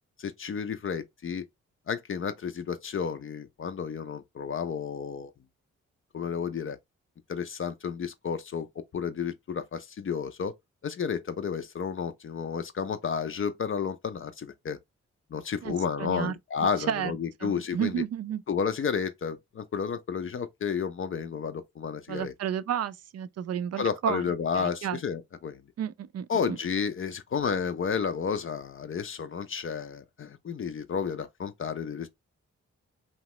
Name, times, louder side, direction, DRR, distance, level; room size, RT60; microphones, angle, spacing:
voice 1, 0.2-1.4 1.9-5.3 6.1-6.8 7.3-8.7 8.9-10.5 10.8-14.8 15.3-17.9 18.5-22.3 23.8-25.6 26.3-32.1, left 6 dB, 40° left, 0.5 m, -31 dB
voice 2, 15.6-16.3 16.9-17.1 17.4-18.4 22.1-25.0 25.8-26.6, right 9 dB, 50° right, 0.4 m, -32 dB
2.9 x 2.1 x 2.9 m
supercardioid pair, 40°, 32 cm